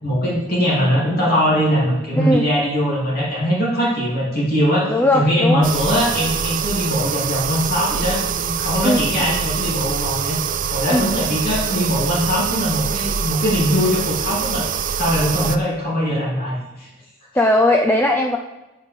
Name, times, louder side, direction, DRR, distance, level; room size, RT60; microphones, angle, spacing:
voice 1, 0.0-10.4 10.7-16.9, equal, 50° left, -7 dB, 3.1 m, -21 dB
voice 2, 4.9-5.6 8.8-9.0 10.9-11.0 17.3-18.4, left 1 dB, 10° left, 2 dB, 0.5 m, -17 dB
sound 1, 5.6-15.6, right 7 dB, 40° right, 0.5 m, -24 dB
13.5 x 8.1 x 3.6 m, 1.1 s
head